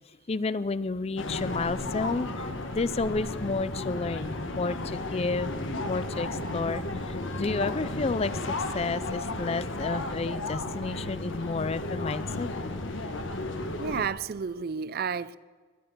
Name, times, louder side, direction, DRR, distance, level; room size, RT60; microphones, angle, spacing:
voice 1, 0.3-5.5 5.9-12.5, left 3 dB, 30° left, 0.4 m, -31 dB
sound 1, 1.2-14.1, left 2 dB, 70° left, 1.4 m, -33 dB
voice 2, 13.8-15.4, right 6 dB, 50° right, 0.4 m, -31 dB
20.5 x 10.0 x 6.7 m
head